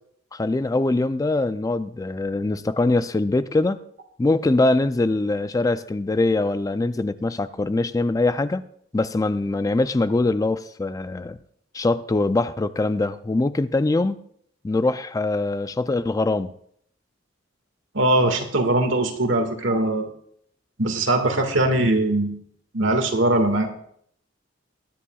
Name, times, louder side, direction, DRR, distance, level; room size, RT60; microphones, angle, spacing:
voice 1, 0.3-3.8 4.2-8.7 8.9-11.4 11.7-14.2 14.6-16.5, left 2 dB, 20° left, 13 dB, 0.3 m, -23 dB
voice 2, 17.9-20.1 20.8-22.4 22.7-23.7, right 1 dB, 75° right, 6 dB, 1.8 m, -21 dB
21.0 x 10.0 x 2.3 m, 0.66 s
head